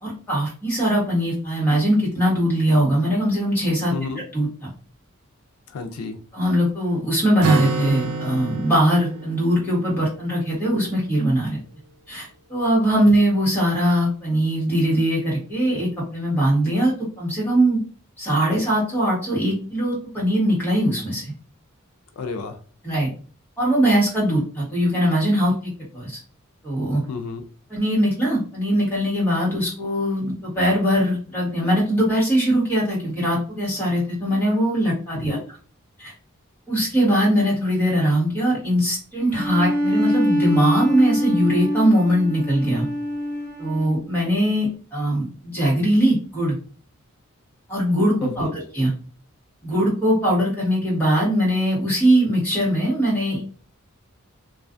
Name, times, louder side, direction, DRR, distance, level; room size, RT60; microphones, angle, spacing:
voice 1, 0.0-3.9 4.3-4.7 6.3-11.6 12.1-17.8 18.2-21.3 22.8-23.1 23.6-26.2 26.6-27.0 27.7-35.4 36.0-36.1 36.7-42.9 43.6-46.5 47.7-48.9 49.6-53.4, equal, 10° left, -6 dB, 1.2 m, -21 dB
voice 2, 3.9-4.2 5.7-6.2 22.2-22.6 27.1-27.4 35.1-35.4 48.2-48.6, left 4 dB, 85° left, 7 dB, 0.4 m, -31 dB
Acoustic guitar, 7.4-11.1, right 4 dB, 90° right, 0.4 m, -29 dB
Bowed string instrument, 39.3-44.0, equal, 20° right, 1.0 m, -24 dB
2.4 x 2.3 x 2.4 m, 0.40 s
head